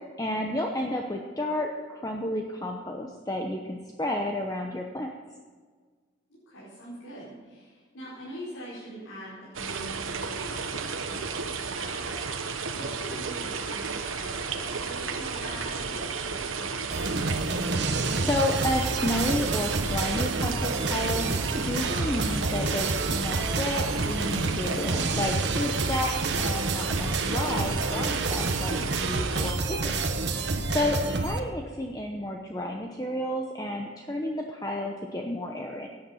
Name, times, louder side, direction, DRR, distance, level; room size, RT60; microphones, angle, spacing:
voice 1, 0.0-5.1 17.9-21.2 21.6-26.1 26.4-29.9 30.3-35.9, left 1 dB, 20° left, 2 dB, 0.8 m, -31 dB
voice 2, 6.5-17.2 31.1-31.3, equal, 85° left, -9 dB, 4.5 m, -43 dB
sound 1, 9.5-29.5, right 5 dB, 85° right, 1.2 m, -33 dB
sound 2, 16.9-31.4, right 3 dB, 55° right, 1.1 m, -29 dB
17.0 x 9.7 x 5.7 m, 1.5 s
head